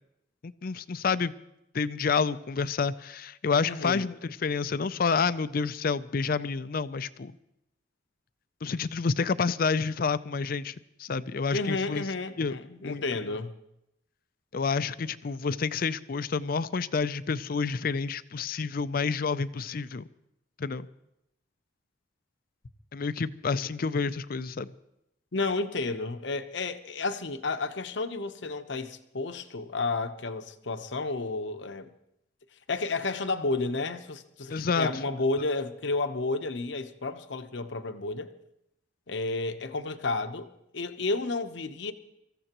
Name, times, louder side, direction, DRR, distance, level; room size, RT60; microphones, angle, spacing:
voice 1, 0.4-1.3 1.7-7.3 8.6-10.7 11.0-12.0 12.4-12.5 12.8-13.0 14.5-20.1 20.6-20.9 22.9-24.7 34.5-34.9, left 5 dB, 50° left, 0.5 m, -29 dB
voice 2, 3.6-4.1 11.5-13.5 25.3-31.9 32.7-38.3 39.1-40.5 40.7-41.9, left 3 dB, 65° left, 0.9 m, -31 dB
25.5 x 15.0 x 3.0 m
head